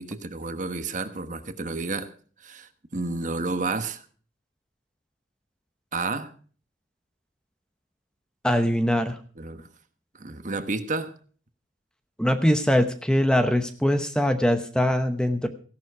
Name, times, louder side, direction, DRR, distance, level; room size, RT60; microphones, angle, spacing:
voice 1, 0.0-2.1 2.4-4.0 5.9-6.3 9.4-9.7 10.2-11.1, right 3 dB, 40° right, 1.2 m, -31 dB
voice 2, 8.4-9.2 12.2-15.5, equal, 5° left, 0.9 m, -22 dB
16.0 x 11.5 x 4.7 m
head